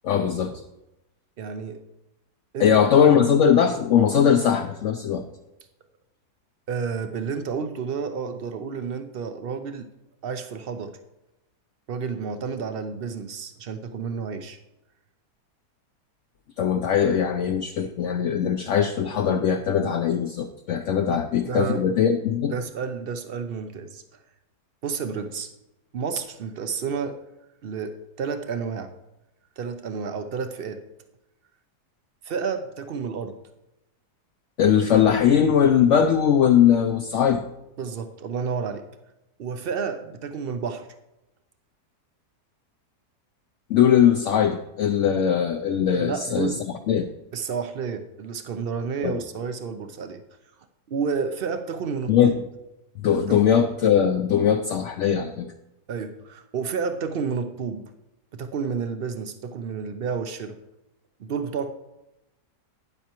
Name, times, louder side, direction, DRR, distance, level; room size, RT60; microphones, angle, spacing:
voice 1, 0.0-0.6 2.6-5.2 16.6-22.5 34.6-37.4 43.7-46.5 46.9-47.1 49.0-49.1 52.1-52.4 53.0-55.5, left 8 dB, 70° left, 6 dB, 0.7 m, -20 dB
voice 2, 1.4-1.8 2.5-2.7 3.0-3.1 6.7-9.9 10.2-11.0 11.9-14.6 21.1-21.9 22.5-24.0 24.8-25.5 25.9-27.2 27.6-28.9 29.6-30.8 32.2-33.4 37.8-38.9 39.4-40.9 45.9-46.6 47.3-50.2 50.9-52.4 53.1-53.5 55.9-57.9 58.3-60.6 61.2-61.7, right 5 dB, 80° right, 8 dB, 0.5 m, -30 dB
12.0 x 9.4 x 2.9 m, 0.93 s
omnidirectional pair, 1.7 m